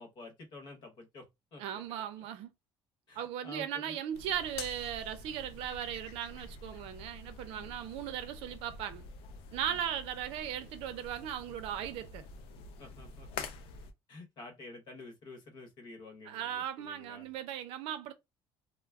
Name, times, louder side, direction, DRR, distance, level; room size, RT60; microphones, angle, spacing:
voice 1, 0.0-2.2 3.1-4.0 7.5-7.8 9.7-9.8 12.8-13.5 14.1-17.3, left 3 dB, 50° left, 0.9 m, -50 dB
voice 2, 1.6-2.5 3.2-9.0 9.5-12.3 16.2-18.1, right 10 dB, 85° right, 0.5 m, -37 dB
sound 1, 4.1-13.9, left 4 dB, 75° left, 0.4 m, -47 dB
2.2 x 2.0 x 3.4 m
cardioid pair, 145°, 10 cm